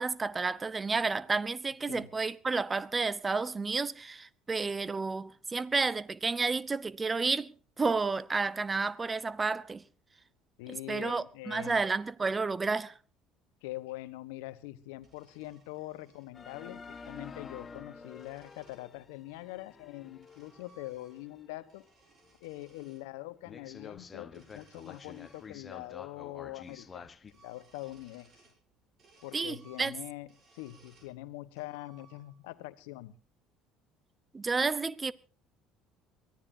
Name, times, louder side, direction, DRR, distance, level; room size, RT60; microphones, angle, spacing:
voice 1, 0.0-9.8 10.7-12.9 29.3-29.9 34.3-35.1, right 4 dB, 25° right, 0.9 m, -31 dB
voice 2, 10.6-11.8 13.6-21.8 22.4-28.4 29.2-33.1, left 17 dB, 70° left, 1.1 m, -44 dB
sound 1, 15.0-16.3 17.5-18.9 19.8-21.4 21.7-23.0 24.2-25.9 26.2-26.3 26.6-26.9 27.2-28.6 29.0-31.1 31.6-32.5, right 3 dB, 45° right, 7.8 m, -64 dB
sound 2, 16.3-21.7 22.2-22.3 22.9-23.0 23.4-27.3, left 5 dB, 30° left, 1.1 m, -49 dB
23.5 x 16.0 x 2.7 m
hypercardioid pair, 60°, 0 cm